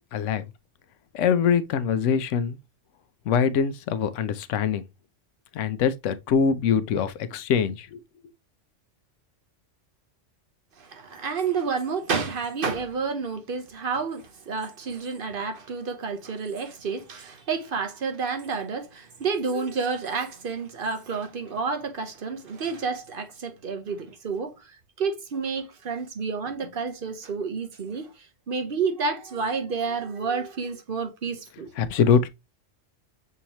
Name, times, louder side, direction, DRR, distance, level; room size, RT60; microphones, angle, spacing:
voice 1, 0.1-0.4 1.1-2.6 3.3-4.9 5.5-8.0 31.8-32.3, left 7 dB, 85° left, 0.9 m, -23 dB
voice 2, 10.8-31.7, right 5 dB, 50° right, 0.9 m, -30 dB
6.3 x 2.8 x 2.9 m
omnidirectional pair, 1.2 m